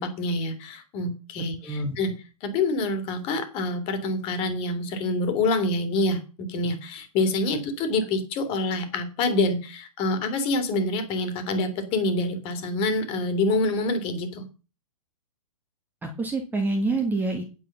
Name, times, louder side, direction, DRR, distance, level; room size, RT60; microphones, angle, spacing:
voice 1, 0.0-2.1 2.4-14.5, left 2 dB, 30° left, 9 dB, 2.7 m, -26 dB
voice 2, 1.6-2.0 16.0-17.4, right 2 dB, 10° right, 3 dB, 1.7 m, -26 dB
9.3 x 7.4 x 5.9 m, 0.32 s
figure-of-eight pair, 125°, 19 cm